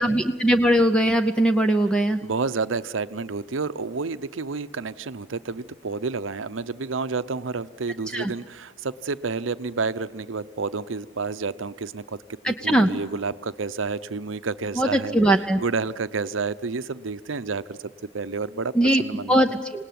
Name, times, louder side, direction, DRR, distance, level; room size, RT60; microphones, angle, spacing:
voice 1, 0.0-2.2 8.1-8.3 12.4-12.9 14.8-15.6 18.7-19.0 19.3-19.8, right 1 dB, 5° left, 6 dB, 0.7 m, -20 dB
voice 2, 2.2-15.2 15.6-17.8 18.1-18.7 19.0-19.4, right 4 dB, 85° right, 13 dB, 0.7 m, -30 dB
27.0 x 18.5 x 9.3 m, 1.4 s
head